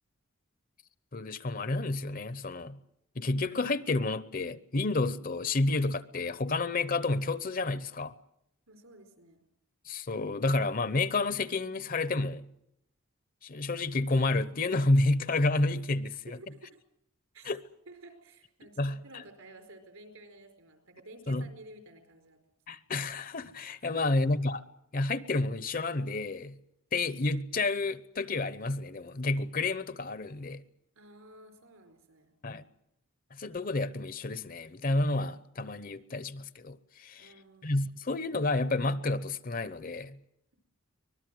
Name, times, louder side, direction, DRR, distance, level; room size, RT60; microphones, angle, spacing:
voice 1, 1.1-2.8 3.2-8.1 9.9-12.5 13.4-16.2 17.4-17.6 18.8-19.2 21.3-21.5 22.7-24.6 24.9-26.6 26.9-30.6 32.4-32.6 33.3-37.3 37.6-40.2, left 2 dB, 40° left, 0.8 m, -30 dB
voice 2, 8.7-9.4 16.3-16.6 17.3-17.5 17.9-22.4 23.9-24.2 30.9-32.3 37.2-37.8, right 2 dB, 75° right, 4.8 m, -52 dB
24.5 x 19.5 x 7.7 m
head